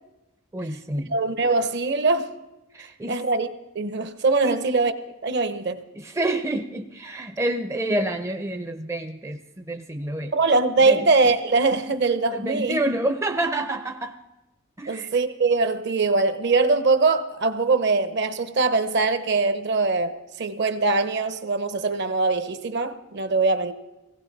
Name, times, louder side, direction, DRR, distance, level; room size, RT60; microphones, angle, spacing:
voice 1, 0.5-1.1 2.7-3.2 4.4-4.6 6.0-10.3 10.8-11.1 12.3-14.2 14.8-15.1, right 1 dB, 15° right, 0.4 m, -28 dB
voice 2, 1.1-2.3 3.1-3.5 3.7-4.9 5.2-5.8 10.3-12.8 14.9-23.7, right 3 dB, 55° right, 0.8 m, -22 dB
17.5 x 16.0 x 4.0 m
head